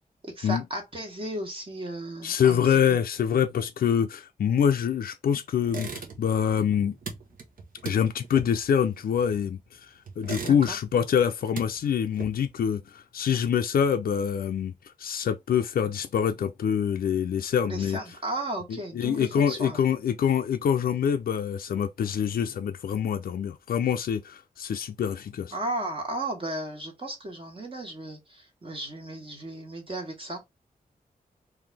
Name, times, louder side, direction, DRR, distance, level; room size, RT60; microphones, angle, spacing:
voice 1, 0.2-2.6 2.9-3.0 10.4-10.8 17.7-19.8 25.5-30.4, right 1 dB, 35° right, 1.4 m, -35 dB
voice 2, 2.2-6.9 7.8-18.0 18.7-25.6, left 8 dB, 75° left, 0.4 m, -25 dB
sound 1, 5.6-6.4 6.7-9.6 10.1-11.0 11.3-12.6, right 5 dB, 65° right, 1.1 m, -39 dB
3.9 x 2.6 x 3.3 m
wide cardioid pair, 115°, 15 cm